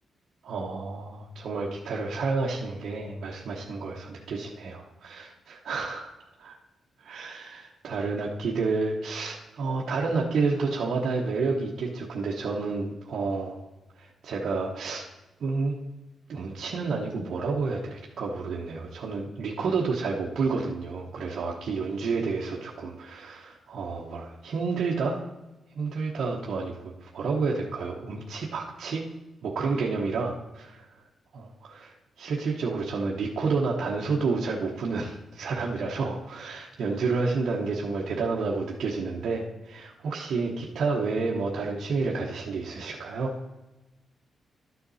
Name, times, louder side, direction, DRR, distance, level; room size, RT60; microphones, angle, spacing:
voice 1, 0.4-6.6 7.0-13.6 14.0-15.1 15.4-15.8 16.3-25.2 25.8-29.0 29.4-30.9 31.3-43.3, right 4 dB, 65° right, -3 dB, 1.0 m, -30 dB
12.0 x 6.8 x 4.1 m, 1.1 s
wide cardioid pair, 145°, 0 cm